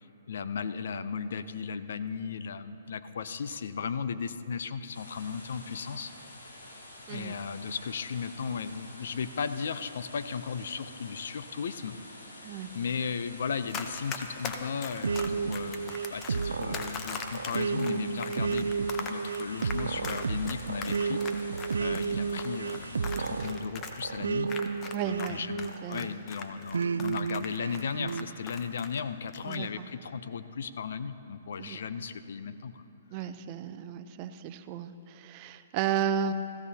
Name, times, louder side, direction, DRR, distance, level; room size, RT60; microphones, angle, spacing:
voice 1, 0.3-6.1 7.1-18.7 19.0-21.2 21.8-24.5 25.0-32.9 33.2-33.3, left 6 dB, 70° left, 12 dB, 0.5 m, -36 dB
sound 1, 4.9-23.4, left 1 dB, 90° left, 2.6 m, -49 dB
Run, 13.7-25.3 25.6-29.0 29.3-29.6, left 6 dB, 25° left, 0.8 m, -40 dB
sound 2, 15.0-26.1 26.7-28.3, right 5 dB, 90° right, 0.3 m, -32 dB
voice 2, 24.9-25.4 25.8-26.2 29.5-29.9 31.6-31.8 33.1-36.3, right 8 dB, 35° right, 11 dB, 0.5 m, -33 dB
16.5 x 15.0 x 2.8 m, 2.8 s
hypercardioid pair, 140°, 0 cm